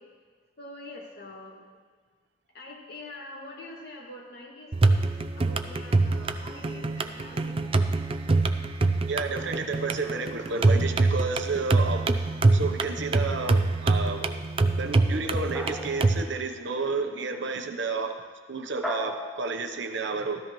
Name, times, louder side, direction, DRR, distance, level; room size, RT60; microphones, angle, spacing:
voice 1, 0.6-1.6 2.5-5.0 5.4-7.7, left 2 dB, 55° left, -2 dB, 2.1 m, -44 dB
sound 1, 4.7-16.2, right 3 dB, 30° right, 0.5 m, -25 dB
voice 2, 9.1-12.1 12.5-14.3 14.8-18.1 18.5-20.4, right 4 dB, 65° right, 6 dB, 0.9 m, -31 dB
sound 2, 15.5-16.6 18.8-19.7, equal, ahead, 0.8 m, -36 dB
14.0 x 13.5 x 3.1 m, 1.5 s
head